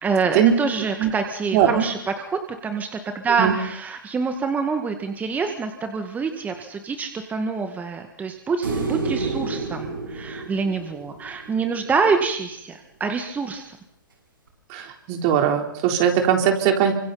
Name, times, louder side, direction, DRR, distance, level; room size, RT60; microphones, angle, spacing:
voice 1, 0.0-2.9 3.1-13.8, right 5 dB, 15° right, 6 dB, 2.0 m, -26 dB
voice 2, 1.5-1.8 3.4-3.5 14.7-16.9, right 9 dB, 40° right, 4 dB, 3.9 m, -20 dB
sound 1, 8.6-11.9 14.5-14.6, right 3 dB, 85° right, 7.7 m, -29 dB
28.5 x 25.5 x 4.3 m, 0.72 s
hypercardioid pair, 120°, 11 cm